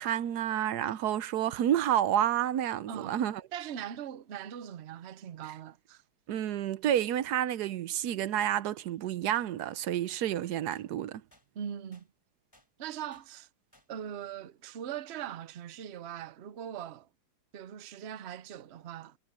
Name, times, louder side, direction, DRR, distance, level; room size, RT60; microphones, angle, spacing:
voice 1, 0.0-3.4 6.3-11.2, right 11 dB, 75° right, 1.2 m, -29 dB
voice 2, 2.9-3.2 3.5-6.0 11.5-12.1 12.8-13.5 13.9-17.1 17.5-19.2, right 9 dB, 50° right, 0.9 m, -41 dB
sound 1, 9.3-9.5 10.1-10.2 10.7-10.9 11.3-11.5 11.9-12.1 12.5-12.7 13.1-13.3 13.7-13.9, left 1 dB, 15° left, 3.7 m, -62 dB
omnidirectional pair, 1.7 m